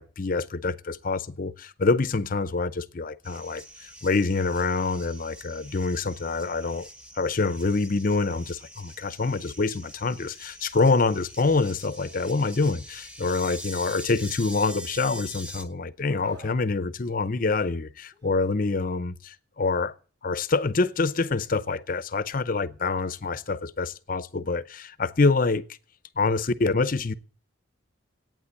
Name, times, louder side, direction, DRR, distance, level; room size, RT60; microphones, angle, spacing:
voice 1, 0.0-6.9 7.1-19.9 20.2-25.6 26.2-27.1, left 3 dB, 40° left, 0.6 m, -26 dB
sound 1, 3.2-15.6, equal, 5° right, 1.1 m, -44 dB
Screaming, 16.1-16.6 18.1-18.3, equal, 55° right, 3.4 m, -47 dB
11.5 x 9.1 x 8.1 m
head